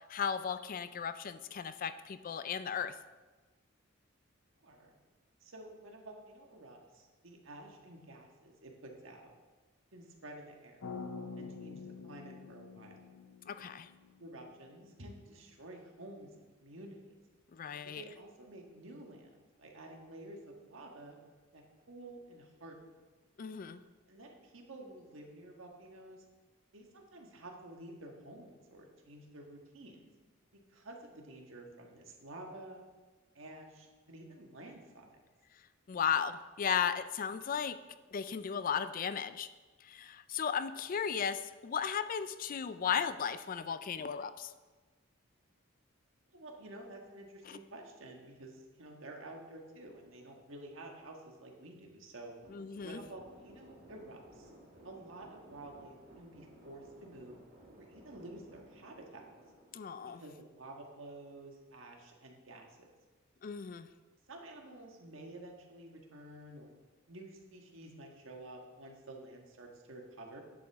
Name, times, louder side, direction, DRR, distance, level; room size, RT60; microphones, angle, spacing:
voice 1, 0.1-2.9 13.5-13.9 17.5-18.0 23.4-23.8 35.9-37.8 38.1-39.5 39.8-44.5 47.5-47.6 52.5-53.0 59.7-60.2 63.4-63.9, left 7 dB, 40° left, 12 dB, 0.4 m, -35 dB
voice 2, 4.6-5.0 5.4-9.3 9.9-10.9 11.4-13.0 14.2-17.1 17.8-21.1 21.5-22.9 24.1-26.2 26.7-30.1 30.5-32.8 33.3-35.2 46.3-52.3 52.8-54.5 54.8-57.4 57.8-59.2 60.0-62.9 64.3-66.7 67.1-70.4, right 1 dB, 70° right, 1 dB, 1.5 m, -51 dB
sound 1, 10.8-15.0, left 4 dB, 85° left, 0.8 m, -47 dB
sound 2, 52.4-60.7, right 1 dB, 50° right, 2.6 m, -58 dB
10.5 x 7.7 x 3.5 m, 1.3 s
head